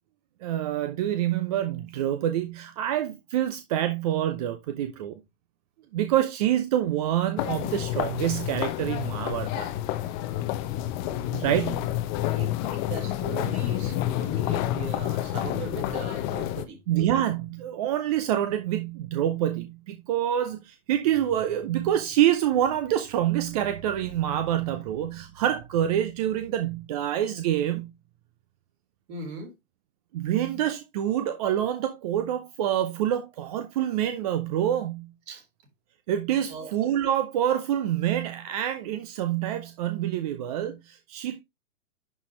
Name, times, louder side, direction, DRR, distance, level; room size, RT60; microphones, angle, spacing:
voice 1, 0.4-5.2 5.9-9.7 11.3-11.9 16.9-27.9 30.1-35.1 36.1-41.4, right 11 dB, 25° right, 0.5 m, -26 dB
sound 1, 7.4-16.7, left 13 dB, 20° left, 0.7 m, -29 dB
voice 2, 12.3-16.8 29.1-29.5 35.3-35.4 36.5-36.7, right 4 dB, 45° right, 4.1 m, -39 dB
11.0 x 4.3 x 3.1 m
hypercardioid pair, 125°, 45 cm